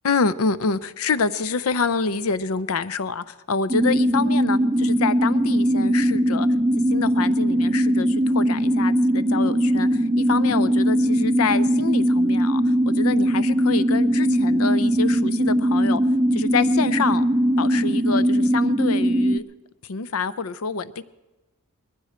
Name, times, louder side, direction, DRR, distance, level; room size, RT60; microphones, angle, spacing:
voice 1, 0.0-6.5 6.9-12.6 12.9-16.0 16.3-17.2 17.6-19.4 19.9-21.0, left 4 dB, 75° left, 16 dB, 0.6 m, -26 dB
sound 1, 3.7-19.4, equal, 10° right, 0.5 m, -20 dB
20.0 x 15.0 x 4.4 m, 1.1 s
head